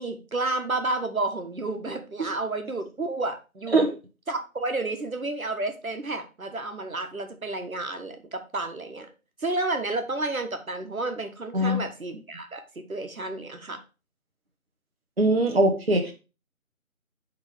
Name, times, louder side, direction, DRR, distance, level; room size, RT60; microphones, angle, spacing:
voice 1, 0.0-3.8 4.3-9.1 9.4-12.6 12.9-13.8, right 2 dB, 75° right, 5 dB, 1.4 m, -31 dB
voice 2, 15.2-16.1, right 1 dB, 45° right, 1 dB, 0.9 m, -22 dB
6.3 x 3.7 x 5.0 m, 0.31 s
figure-of-eight pair, 165°, 42 cm